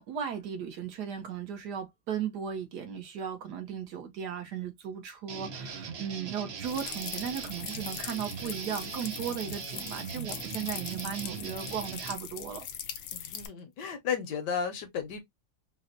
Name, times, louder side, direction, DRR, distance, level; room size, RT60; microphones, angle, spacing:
voice 1, 0.0-12.7, right 8 dB, 65° right, 1.3 m, -36 dB
sound 1, 5.3-12.1, right 6 dB, 90° right, 0.5 m, -40 dB
sound 2, 6.6-13.5, left 9 dB, 85° left, 1.4 m, -41 dB
voice 2, 13.1-15.2, left 6 dB, 70° left, 1.3 m, -34 dB
4.1 x 2.1 x 2.5 m
omnidirectional pair, 2.0 m